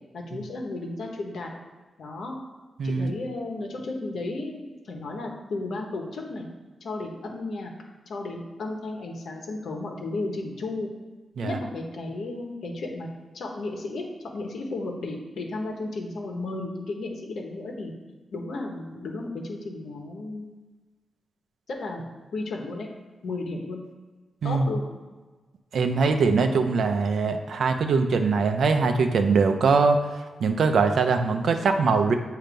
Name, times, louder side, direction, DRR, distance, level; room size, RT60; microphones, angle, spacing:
voice 1, 0.1-1.5 2.0-2.4 2.8-6.5 6.8-7.7 8.1-10.9 11.4-13.1 13.3-14.1 14.3-17.9 18.3-20.5 21.8-22.0 22.3-22.9 23.2-23.8 24.4-24.9, left 2 dB, 80° left, 0 dB, 1.1 m, -33 dB
voice 2, 2.8-3.1 11.4-11.6 24.4-24.7 25.7-30.0 30.4-32.1, right 4 dB, 75° right, 6 dB, 0.6 m, -22 dB
7.5 x 2.8 x 5.2 m, 1.3 s
cardioid pair, 65°, 0 cm